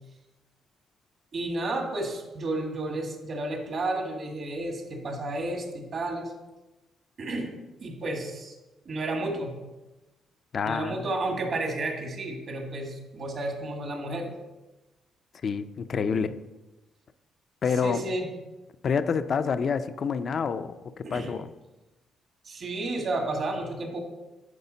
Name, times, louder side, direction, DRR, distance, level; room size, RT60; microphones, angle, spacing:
voice 1, 1.3-6.3 7.2-8.5 8.9-9.6 10.6-14.3 17.8-18.3 21.0-21.3 22.4-24.0, right 2 dB, 55° right, 3 dB, 1.8 m, -32 dB
voice 2, 10.5-11.1 15.4-16.4 17.6-18.0 18.8-21.5, left 6 dB, 50° left, 12 dB, 0.5 m, -28 dB
9.8 x 4.9 x 4.0 m, 1.1 s
cardioid pair, 90°, 0 cm